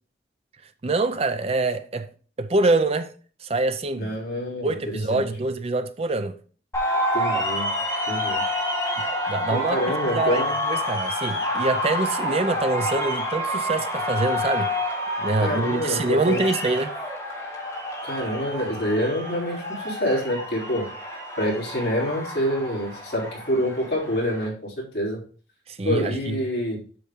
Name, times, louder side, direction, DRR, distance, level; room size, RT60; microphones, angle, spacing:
voice 1, 0.8-2.1 2.4-3.1 3.4-4.1 4.6-6.4 9.0-9.8 10.1-10.4 10.7-14.7 15.2-17.0 25.7-26.4, right 2 dB, 35° right, 0.5 m, -25 dB
voice 2, 4.0-5.2 7.1-7.7 8.1-8.4 9.5-10.6 15.4-16.5 18.0-20.9 21.4-25.2 25.8-26.8, equal, 60° left, 3.4 m, -27 dB
sound 1, 6.7-24.5, left 1 dB, 15° left, 2.4 m, -28 dB
7.6 x 6.8 x 3.7 m
head